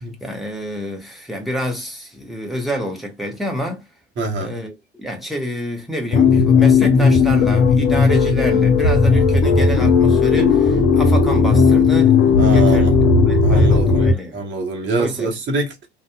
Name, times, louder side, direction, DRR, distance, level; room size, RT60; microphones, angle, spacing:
voice 1, 0.2-3.8 4.4-12.2 12.5-12.9 13.3-14.4 15.0-15.3, equal, ahead, 1.0 m, -28 dB
voice 2, 4.2-4.6 12.4-12.9 13.4-15.9, right 3 dB, 35° right, 0.9 m, -24 dB
sound 1, 6.1-14.1, left 4 dB, 50° left, 0.7 m, -14 dB
2.6 x 2.1 x 2.3 m
figure-of-eight pair, 65°, 32 cm